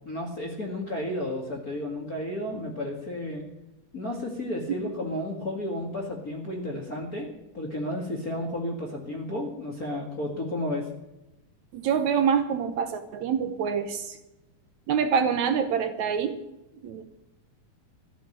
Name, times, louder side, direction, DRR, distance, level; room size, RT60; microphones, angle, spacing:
voice 1, 0.1-3.5 3.9-10.9, left 1 dB, 30° left, 0 dB, 1.9 m, -32 dB
voice 2, 11.7-14.2 14.9-16.4 16.8-17.0, right 7 dB, 70° right, 9 dB, 1.8 m, -26 dB
15.0 x 7.1 x 9.9 m, 0.97 s
omnidirectional pair, 4.2 m